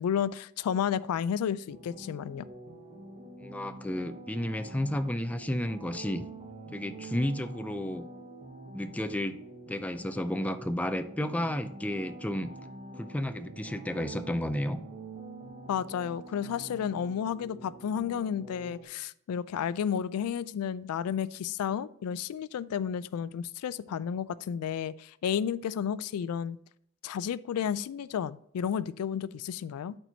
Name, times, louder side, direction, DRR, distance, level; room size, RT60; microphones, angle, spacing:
voice 1, 0.0-2.5 15.7-26.6 27.0-29.9, left 8 dB, 90° left, 18 dB, 0.3 m, -32 dB
sound 1, 1.7-18.8, right 2 dB, 30° right, 1.0 m, -46 dB
voice 2, 3.4-6.2 6.7-8.0 8.7-9.4 9.7-12.5 13.0-14.8, left 1 dB, 5° left, 9 dB, 0.3 m, -32 dB
12.0 x 4.5 x 2.7 m, 0.70 s
head